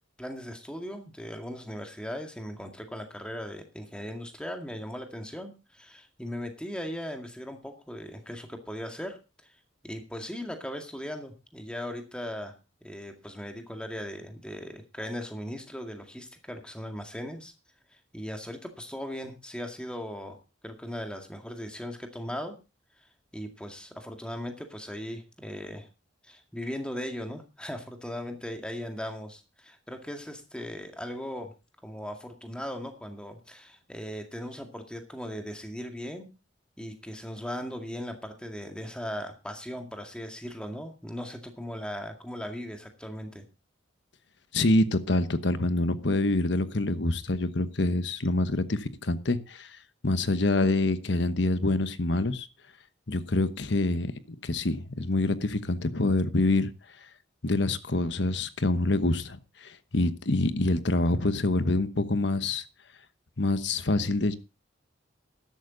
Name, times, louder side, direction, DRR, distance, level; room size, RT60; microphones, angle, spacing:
voice 1, 0.2-9.5 9.8-17.5 17.9-20.4 20.6-22.6 23.3-25.9 26.2-31.5 31.8-36.3 36.8-43.4, equal, 5° left, 2.0 m, -38 dB
voice 2, 44.5-52.5 53.1-54.1 54.4-56.7 57.4-62.6 63.4-64.4, left 2 dB, 65° left, 1.1 m, -26 dB
13.5 x 11.5 x 3.9 m
head